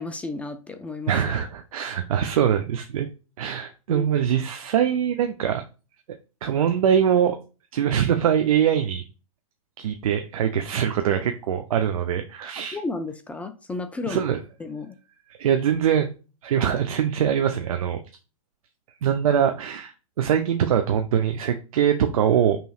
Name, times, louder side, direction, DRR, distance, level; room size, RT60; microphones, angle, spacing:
voice 1, 0.0-1.2 3.9-4.1 12.7-14.2 14.6-14.9, left 3 dB, 5° left, 0.3 m, -32 dB
voice 2, 1.1-3.1 3.4-5.6 6.4-7.4 7.7-9.0 9.8-12.8 14.1-14.4 15.4-16.1 16.4-18.0 19.0-22.6, right 9 dB, 70° right, 0.6 m, -23 dB
5.5 x 3.1 x 2.4 m
hypercardioid pair, 130°, 18 cm